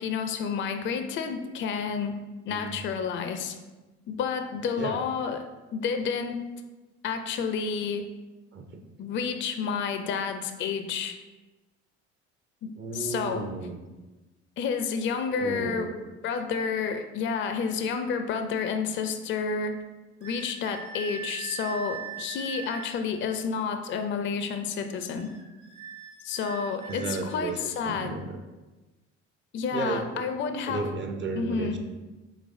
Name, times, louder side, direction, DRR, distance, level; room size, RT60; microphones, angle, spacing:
voice 1, 0.0-2.2 2.5-3.6 4.1-5.4 5.7-6.4 7.0-8.1 9.0-11.2 12.6-13.4 14.6-15.9 16.2-19.8 20.2-25.3 26.2-28.2 29.5-30.8 31.4-31.8, left 6 dB, 35° left, 7 dB, 0.4 m, -30 dB
voice 2, 2.5-2.8 4.8-5.0 8.5-8.8 12.8-13.8 15.4-16.0 26.9-28.4 29.7-30.2 30.7-31.8, right 3 dB, 35° right, 4 dB, 0.6 m, -34 dB
sound 1, 20.2-23.0 25.1-27.7, right 6 dB, 65° right, 1.3 m, -41 dB
5.1 x 3.1 x 2.6 m, 1.1 s
hypercardioid pair, 60°, 34 cm